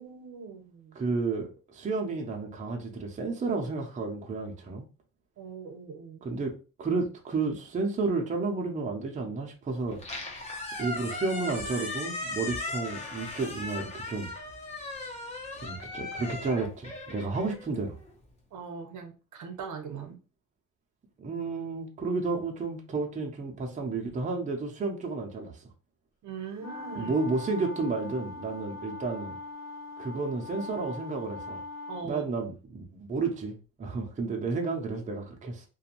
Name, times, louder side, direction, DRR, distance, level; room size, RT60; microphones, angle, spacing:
voice 1, 0.0-1.0 5.4-6.2 18.5-20.2 26.2-27.3 31.9-32.2, right 5 dB, 70° right, 0.7 m, -41 dB
voice 2, 1.0-4.9 6.2-10.0 10.8-14.3 15.6-18.0 21.2-25.6 27.0-29.3 30.0-31.6 32.0-35.6, right 3 dB, 25° right, 0.5 m, -32 dB
Squeak, 9.9-18.1, left 2 dB, 20° left, 0.7 m, -38 dB
sound 1, 26.6-32.1, left 3 dB, 45° left, 1.3 m, -41 dB
2.5 x 2.2 x 2.8 m
cardioid pair, 135°, 31 cm